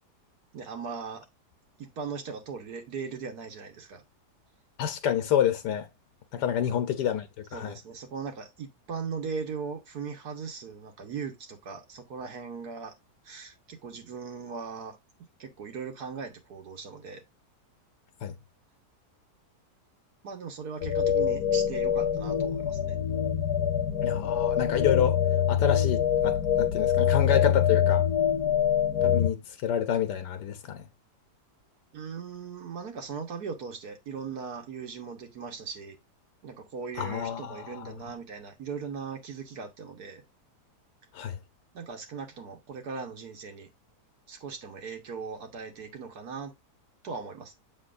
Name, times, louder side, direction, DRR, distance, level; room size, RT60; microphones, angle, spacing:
voice 1, 0.5-1.2 1.8-4.0 6.6-6.8 7.5-12.9 13.2-15.0 15.4-17.2 20.2-22.9 31.9-36.0 36.4-40.2 41.7-43.7 44.3-46.5 47.0-47.6, right 5 dB, 70° right, 1.6 m, -39 dB
voice 2, 4.8-5.9 6.3-7.7 18.2-18.3 24.0-25.2 25.5-28.0 29.0-30.8 37.0-37.9 41.1-41.4, left 9 dB, 90° left, 1.4 m, -28 dB
sound 1, 20.8-29.3, left 9 dB, 70° left, 1.3 m, -25 dB
7.7 x 6.2 x 2.5 m
omnidirectional pair, 1.8 m